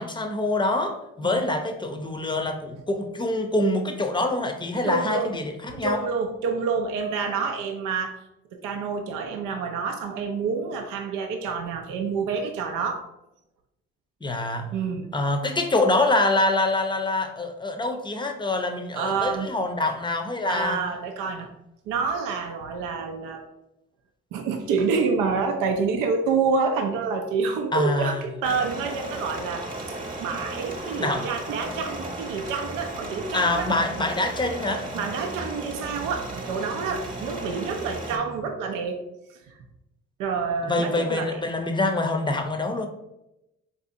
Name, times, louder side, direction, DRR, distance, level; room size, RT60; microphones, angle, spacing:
voice 1, 0.0-6.0 14.2-14.7 15.1-20.8 27.7-28.3 31.0-31.3 33.3-34.9 40.6-42.9, left 2 dB, 15° left, 5 dB, 0.6 m, -25 dB
voice 2, 4.8-5.3 5.8-8.2 8.5-13.0 14.7-15.1 18.9-19.5 20.5-21.5 21.9-23.4 24.3-29.7 30.2-33.7 34.9-39.0 39.3-39.5 40.2-41.4, right 5 dB, 75° right, 4 dB, 0.5 m, -28 dB
sound 1, 28.4-38.2, right 1 dB, 25° right, 1.0 m, -35 dB
4.1 x 2.6 x 2.6 m, 0.90 s
hypercardioid pair, 50°, 33 cm